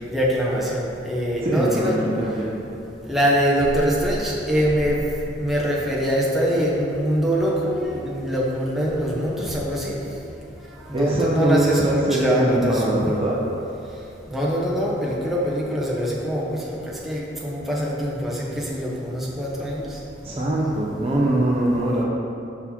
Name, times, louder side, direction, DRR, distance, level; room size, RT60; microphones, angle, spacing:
voice 1, 0.1-2.0 3.1-5.0 5.4-10.0 10.9-13.2 14.3-16.8 17.0-19.9, equal, ahead, -6 dB, 0.8 m, -23 dB
voice 2, 1.4-2.5 10.9-13.4 20.2-22.0, right 1 dB, 30° right, -4 dB, 0.5 m, -22 dB
5.7 x 4.6 x 4.2 m, 2.8 s
head